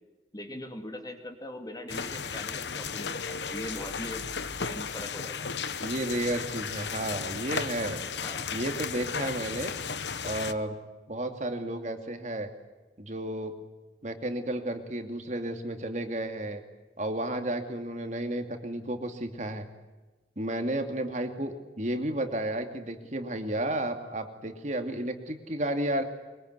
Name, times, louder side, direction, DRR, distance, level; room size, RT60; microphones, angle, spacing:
voice 1, 0.3-4.2 4.6-5.5 8.2-8.5, left 1 dB, 20° left, 5 dB, 2.8 m, -41 dB
sound 1, 1.9-10.5, left 6 dB, 75° left, 1.3 m, -35 dB
voice 2, 5.8-8.0 8.5-9.7 10.2-10.8 11.1-12.5 13.0-13.5 14.0-16.6 17.0-19.7 20.4-26.0, right 1 dB, 40° right, 6 dB, 2.5 m, -32 dB
23.5 x 23.5 x 9.6 m, 1.2 s
head